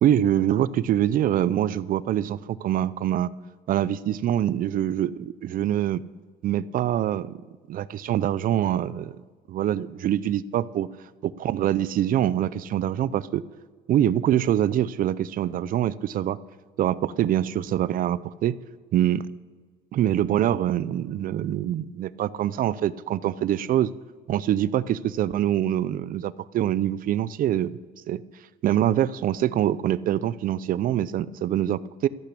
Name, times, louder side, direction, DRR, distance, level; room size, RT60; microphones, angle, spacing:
voice 1, 0.0-3.3 3.7-6.0 6.4-7.4 7.7-9.2 9.5-10.9 11.2-13.4 13.9-16.4 16.8-18.6 18.9-19.3 19.9-23.9 24.3-27.7 28.1-28.2 28.6-32.1, right 11 dB, 55° right, 18 dB, 0.5 m, -24 dB
13.5 x 8.4 x 8.4 m, 1.5 s
cardioid pair, 110°, 17 cm